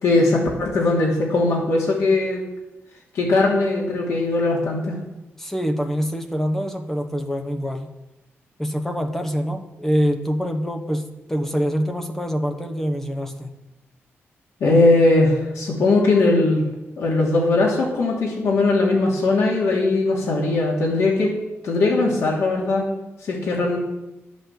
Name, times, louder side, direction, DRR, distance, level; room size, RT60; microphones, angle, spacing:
voice 1, 0.0-2.4 3.1-5.0 14.6-16.6 17.0-21.3 21.6-22.9 23.2-23.8, left 2 dB, 85° left, -3 dB, 2.9 m, -19 dB
voice 2, 5.4-7.9 8.6-13.5, equal, 5° left, 6 dB, 1.1 m, -25 dB
11.0 x 8.2 x 7.5 m, 0.96 s
wide cardioid pair, 175°, 5 cm